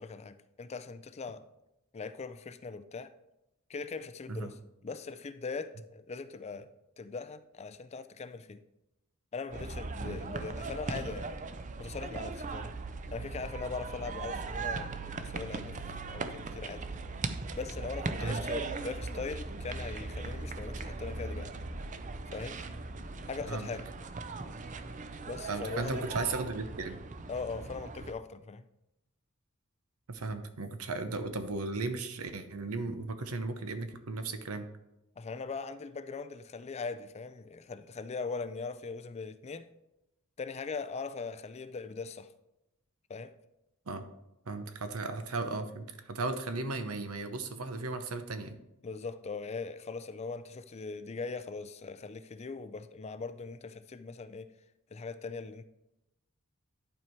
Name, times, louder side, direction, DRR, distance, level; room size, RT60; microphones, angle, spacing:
voice 1, 0.0-1.5 1.9-3.1 3.7-6.7 7.0-8.6 9.3-11.4 11.8-12.7 13.1-16.9 17.5-21.5 22.3-22.7 23.3-23.9 25.2-26.1 27.3-28.6 35.2-39.7 40.4-42.3 43.1-43.3 48.8-54.5 54.9-55.6, left 4 dB, 30° left, 0.4 m, -40 dB
sound 1, 9.5-28.1, right 3 dB, 35° right, 0.5 m, -39 dB
voice 2, 25.5-27.0 30.1-34.7 43.9-44.1 44.5-48.6, right 3 dB, 85° right, 0.9 m, -36 dB
11.0 x 4.6 x 4.5 m
head